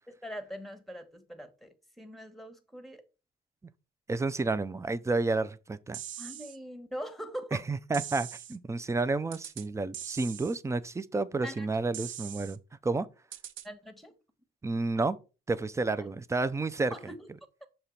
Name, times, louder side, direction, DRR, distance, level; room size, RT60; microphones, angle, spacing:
voice 1, 0.1-3.0 6.2-7.6 11.4-11.7 13.6-14.1 16.0-16.1 16.9-17.3, equal, ahead, 1.1 m, -42 dB
voice 2, 4.1-6.0 7.5-13.1 14.6-15.2 15.5-16.9, right 3 dB, 15° right, 0.5 m, -30 dB
sound 1, 5.9-6.6 7.9-8.6 9.3-9.7 9.9-10.6 11.9-12.6 13.3-13.7, right 10 dB, 80° right, 0.6 m, -41 dB
6.6 x 2.9 x 5.8 m
cardioid pair, 90°, 20 cm